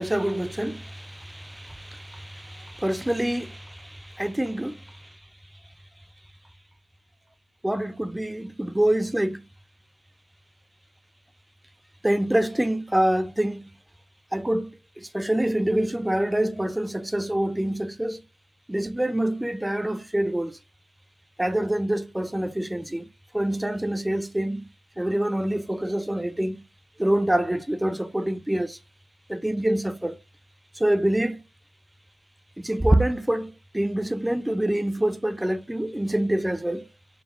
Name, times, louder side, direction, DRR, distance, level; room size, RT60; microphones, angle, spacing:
voice 1, 0.0-5.2 7.6-9.4 12.0-13.6 14.3-18.2 18.7-20.6 21.4-23.1 23.3-24.7 25.0-26.6 27.0-28.8 29.3-30.2 30.8-31.4 32.6-36.9, right 1 dB, 5° right, 0.6 m, -26 dB
7.1 x 5.9 x 2.5 m
cardioid pair, 90°, 0 cm